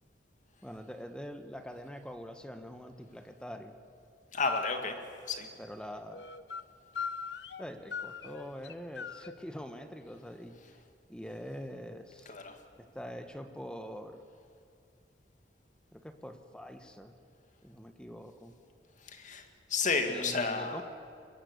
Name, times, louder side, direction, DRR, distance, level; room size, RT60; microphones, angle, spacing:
voice 1, 0.6-3.7 5.6-6.3 7.6-10.8 11.1-12.3 12.8-14.2 15.9-17.2 17.6-18.5 20.1-20.8, equal, 5° left, 7 dB, 1.4 m, -44 dB
voice 2, 4.3-5.0 5.3-5.5 12.3-12.6 19.1-20.8, left 4 dB, 45° left, 6 dB, 2.2 m, -32 dB
sound 1, 4.4-4.8 6.1-6.6 6.9-7.7 7.9-9.4, left 6 dB, 80° left, 0.9 m, -39 dB
22.5 x 21.0 x 8.2 m, 2.4 s
head